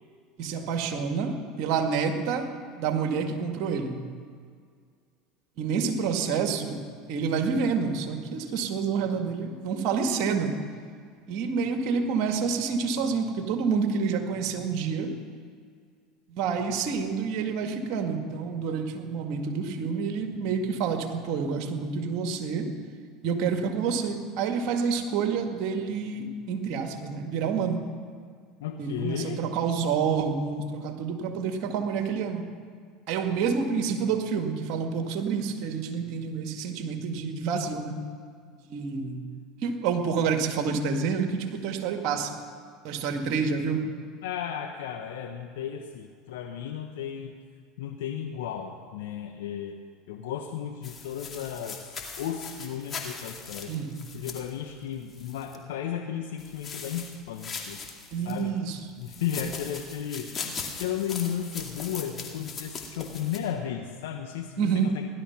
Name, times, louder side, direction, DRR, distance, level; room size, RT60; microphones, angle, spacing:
voice 1, 0.4-2.5 2.8-4.0 5.6-6.8 7.1-10.6 11.3-15.1 16.3-22.7 23.2-27.8 28.8-32.4 33.1-38.0 38.7-39.2 39.6-42.3 42.8-43.9 53.7-54.0 58.1-58.8 64.6-65.1, right 5 dB, 60° right, 5 dB, 1.9 m, -28 dB
voice 2, 28.6-29.4 44.2-47.3 47.8-49.8 50.1-53.7 54.1-57.8 58.2-58.5 59.0-65.1, left 9 dB, 80° left, 4 dB, 0.9 m, -34 dB
sound 1, 50.8-55.6 56.4-58.4 59.0-63.4, left 5 dB, 35° left, 2.3 m, -40 dB
16.5 x 12.0 x 5.9 m, 2.1 s
hypercardioid pair, 85°, 0 cm